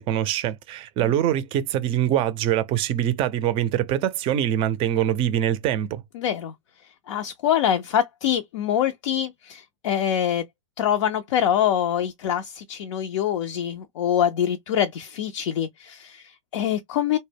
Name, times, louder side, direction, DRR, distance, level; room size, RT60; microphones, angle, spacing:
voice 1, 0.0-6.0, right 11 dB, 35° right, 0.4 m, -24 dB
voice 2, 6.1-6.5 7.1-10.4 10.8-17.2, left 10 dB, 70° left, 0.4 m, -25 dB
2.1 x 2.0 x 3.3 m
hypercardioid pair, 120°, 16 cm